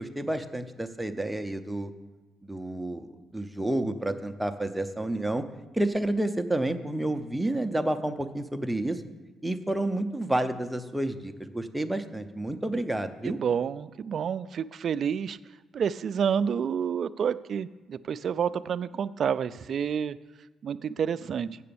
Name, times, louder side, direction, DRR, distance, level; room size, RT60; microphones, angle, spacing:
voice 1, 0.0-1.9 2.4-5.4 5.7-9.0 9.4-13.4, right 1 dB, 5° right, 8 dB, 0.6 m, -30 dB
voice 2, 13.2-15.4 15.7-20.2 20.6-21.6, right 7 dB, 55° right, 15 dB, 0.3 m, -29 dB
7.6 x 6.8 x 6.9 m, 1.2 s
cardioid pair, 90°, 0 cm